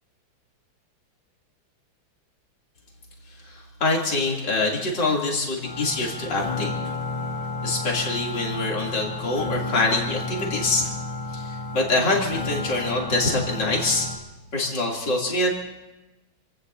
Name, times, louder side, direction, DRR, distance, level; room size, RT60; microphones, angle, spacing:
voice 1, 3.5-6.7 7.6-10.9 11.3-14.1 14.5-15.5, left 2 dB, 60° left, -2 dB, 3.8 m, -25 dB
sound 1, 5.6-14.2, left 2 dB, 85° left, 4.8 m, -32 dB
28.5 x 18.0 x 2.8 m, 1.0 s
omnidirectional pair, 2.1 m